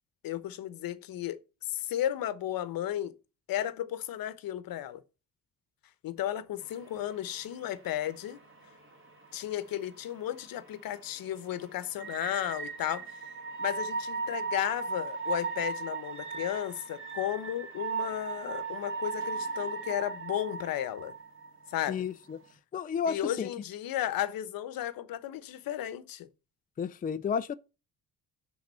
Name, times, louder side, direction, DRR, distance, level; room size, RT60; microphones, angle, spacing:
voice 1, 0.2-3.1 3.5-5.0 6.0-8.4 9.3-13.2 13.6-21.1 21.7-22.0 23.0-26.3, left 12 dB, 75° left, 1.0 m, -34 dB
sound 1, 6.6-22.5, right 4 dB, 35° right, 2.7 m, -39 dB
voice 2, 21.9-22.4 22.7-23.5 26.8-27.5, left 7 dB, 25° left, 0.4 m, -32 dB
10.5 x 3.8 x 5.5 m
cardioid pair, 105°, 35 cm